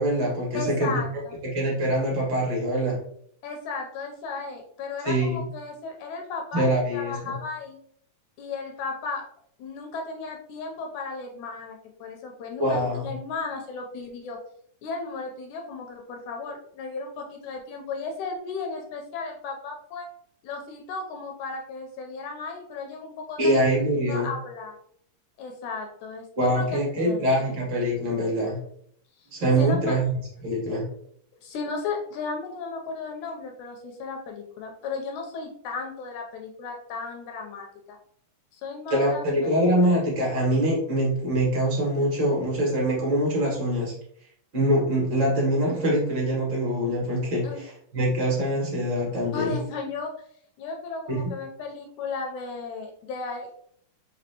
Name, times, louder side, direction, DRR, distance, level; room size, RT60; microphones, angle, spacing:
voice 1, 0.0-1.0 1.4-3.0 5.1-5.5 6.5-7.4 12.6-13.1 23.4-24.3 26.4-28.6 29.3-30.1 30.4-30.9 38.9-43.9 44.5-49.6 51.1-51.3, right 1 dB, 45° right, -4 dB, 1.7 m, -24 dB
voice 2, 0.5-1.4 3.4-6.6 6.9-7.8 8.4-9.2 9.6-14.4 14.8-20.1 20.4-23.5 24.1-24.8 25.4-27.2 29.2-29.3 29.6-30.0 31.4-38.0 38.5-39.5 47.4-47.6 49.3-50.1 50.6-53.5, left 4 dB, 80° left, 2 dB, 1.8 m, -35 dB
5.2 x 2.9 x 2.8 m, 0.65 s
omnidirectional pair, 3.7 m